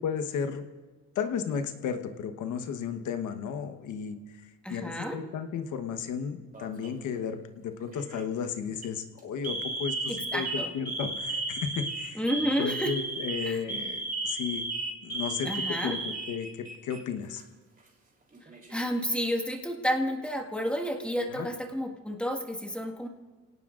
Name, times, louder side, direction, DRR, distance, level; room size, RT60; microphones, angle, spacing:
voice 1, 0.0-0.7 1.1-12.2 12.6-14.6 15.0-17.4 21.3-21.5, left 7 dB, 80° left, 8 dB, 1.2 m, -34 dB
voice 2, 4.6-5.2 10.1-10.7 12.1-12.9 13.4-13.6 15.4-16.0 18.7-23.1, equal, 5° left, 1 dB, 1.7 m, -31 dB
Alarm, 6.5-7.0 7.9-8.2 8.7-8.9 9.4-17.0 17.3-17.4 18.3-19.0, right 2 dB, 30° right, 3.4 m, -34 dB
29.0 x 18.0 x 2.5 m, 1.4 s
cardioid pair, 90°, 30 cm